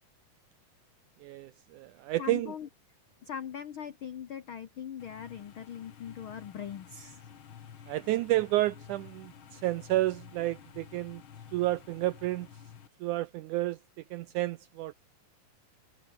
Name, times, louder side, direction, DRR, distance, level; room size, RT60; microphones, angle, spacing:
voice 1, 1.2-2.5 7.9-11.2 11.5-12.5 13.0-13.8 14.1-14.9, right 16 dB, 90° right, 1.8 m, -30 dB
voice 2, 2.2-2.7 3.2-7.3 7.7-8.0, left 8 dB, 85° left, 1.1 m, -41 dB
sound 1, 5.0-12.9, left 8 dB, 50° left, 1.8 m, -51 dB
omnidirectional pair, 4.2 m